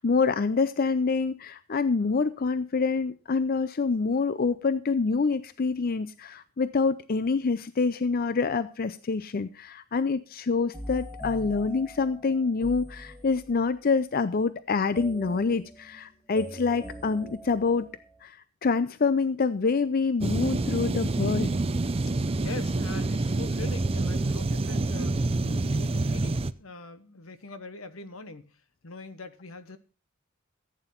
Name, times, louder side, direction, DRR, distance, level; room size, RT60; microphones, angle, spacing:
voice 1, 0.0-17.9 18.2-18.4 18.6-21.5, left 4 dB, 45° left, 14 dB, 0.5 m, -26 dB
sound 1, 10.7-13.7 14.9-18.2, right 1 dB, 5° left, 1.8 m, -42 dB
sound 2, 20.2-26.5, right 2 dB, 30° right, 0.5 m, -27 dB
voice 2, 22.1-29.8, left 3 dB, 85° left, 12 dB, 1.2 m, -43 dB
15.0 x 9.0 x 4.3 m, 0.35 s
head